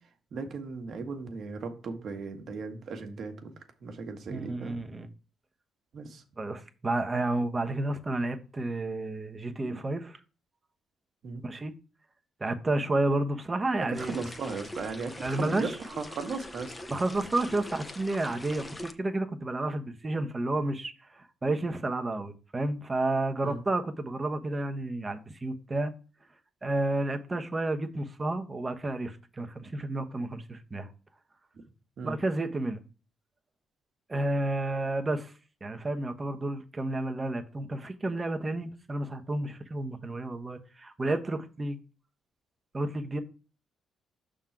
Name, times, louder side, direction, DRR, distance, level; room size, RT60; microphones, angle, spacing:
voice 1, 0.3-3.5 3.8-4.8 5.9-6.2 9.7-9.8 11.2-11.4 13.8-16.7 23.4-23.6 32.0-32.2, right 4 dB, 60° right, 1.4 m, -37 dB
voice 2, 4.3-5.1 6.4-10.2 11.4-11.7 12.4-14.2 15.2-15.7 16.9-25.9 26.6-30.9 32.0-32.8 34.1-35.3 35.6-41.8 42.7-43.2, right 2 dB, 25° right, 1.0 m, -31 dB
sound 1, 13.9-18.9, left 1 dB, 15° left, 0.9 m, -43 dB
6.2 x 3.8 x 5.8 m
cardioid pair, 90°, 0 cm